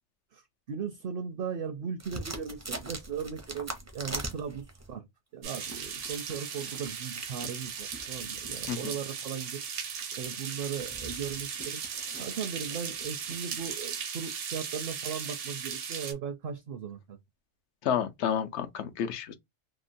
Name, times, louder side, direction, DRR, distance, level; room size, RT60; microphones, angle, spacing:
voice 1, 0.7-5.0 5.3-9.6 10.1-11.8 12.2-17.2, right 7 dB, 60° right, 0.6 m, -37 dB
sound 1, 2.0-4.9 5.5-14.1, right 2 dB, 25° right, 0.4 m, -43 dB
sound 2, 5.4-16.1, right 7 dB, 80° right, 1.0 m, -37 dB
voice 2, 17.8-19.3, left 8 dB, 70° left, 0.8 m, -30 dB
2.9 x 2.2 x 2.5 m
omnidirectional pair, 1.2 m